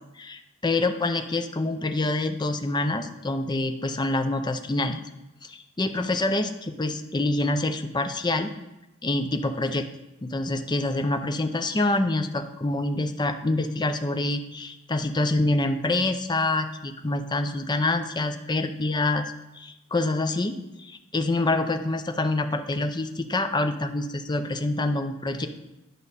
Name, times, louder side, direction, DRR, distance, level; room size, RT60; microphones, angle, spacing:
voice 1, 0.2-5.0 5.4-8.5 9.0-9.9 10.2-25.5, left 2 dB, 20° left, 7 dB, 0.5 m, -26 dB
11.0 x 5.3 x 4.1 m, 0.95 s
head